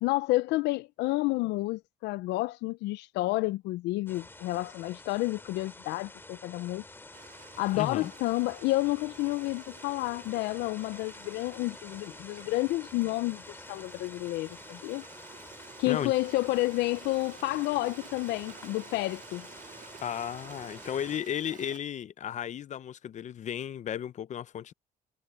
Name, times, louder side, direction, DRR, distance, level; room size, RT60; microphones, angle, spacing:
voice 1, 0.0-6.8 7.6-15.0 15.8-19.5, left 19 dB, 85° left, 0.5 m, -30 dB
sound 1, 4.1-21.2, left 2 dB, 15° left, 2.6 m, -49 dB
Stream, 7.1-21.8, right 8 dB, 50° right, 1.7 m, -52 dB
voice 2, 7.7-8.1 15.8-16.1 20.0-24.7, left 9 dB, 45° left, 0.7 m, -34 dB
cardioid pair, 110°, 17 cm